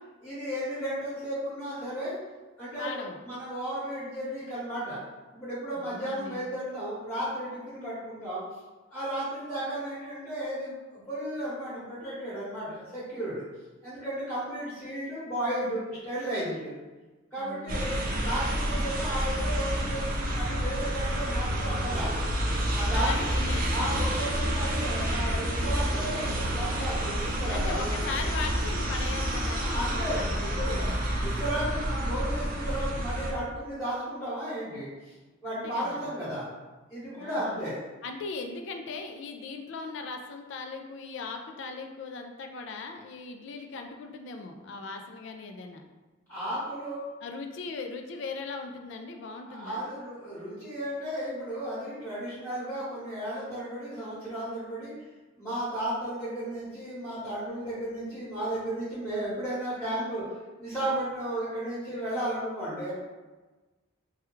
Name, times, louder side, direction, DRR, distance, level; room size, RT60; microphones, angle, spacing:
voice 1, 0.2-2.2 2.6-3.0 3.2-5.0 5.3-8.4 8.9-13.4 13.8-16.7 17.3-22.1 22.7-23.3 23.7-28.1 29.6-30.9 31.2-34.9 35.4-36.4 36.9-37.8 46.3-47.1 49.5-54.9 55.4-60.2 60.6-62.9, right 1 dB, 10° left, -12 dB, 1.0 m, -34 dB
voice 2, 2.8-3.2 5.8-6.4 17.4-18.0 22.9-23.9 27.0-30.3 35.4-36.1 37.2-37.7 38.0-45.8 47.2-49.9, left 4 dB, 65° left, 4 dB, 0.3 m, -39 dB
sound 1, 17.7-33.3, equal, 45° right, 0.5 m, -29 dB
3.3 x 2.3 x 3.0 m, 1.2 s
head